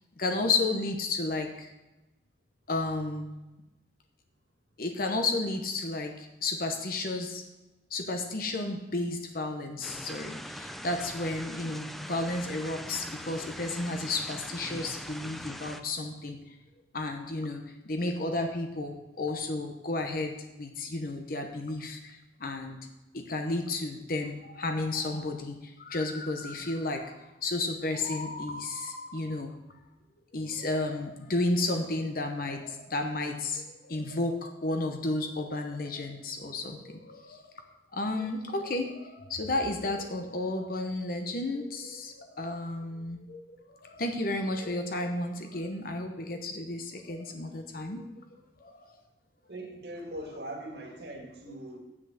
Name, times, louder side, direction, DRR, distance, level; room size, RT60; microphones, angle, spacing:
voice 1, 0.2-1.7 2.7-3.3 4.8-7.4 7.9-16.4 16.9-22.8 23.1-27.1 27.4-29.5 30.3-37.4 37.9-48.0 48.6-49.0, left 2 dB, 50° left, 5 dB, 0.9 m, -32 dB
sound 1, 9.8-15.8, equal, ahead, 0.4 m, -42 dB
voice 2, 49.5-51.8, right 1 dB, 65° right, 2 dB, 2.1 m, -41 dB
7.7 x 6.2 x 7.5 m, 1.0 s
head